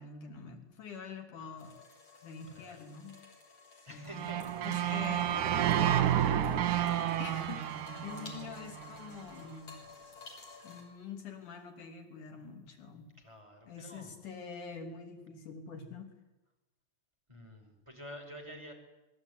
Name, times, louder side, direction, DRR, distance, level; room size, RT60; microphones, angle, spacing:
voice 1, 0.0-1.7 2.2-3.2 3.8-4.3 4.6-5.7 6.1-7.7 8.0-10.2 10.6-13.1 13.7-16.1, left 5 dB, 80° left, 4 dB, 4.6 m, -46 dB
sound 1, 1.6-10.8, left 4 dB, 50° left, 7.2 m, -53 dB
voice 2, 2.5-2.9 3.9-5.0 9.2-9.4 13.2-14.2 17.3-18.7, equal, 10° right, 2 dB, 5.4 m, -50 dB
sound 2, 4.1-9.2, right 11 dB, 85° right, 2.9 m, -30 dB
26.5 x 22.0 x 9.8 m, 1.0 s
omnidirectional pair, 3.5 m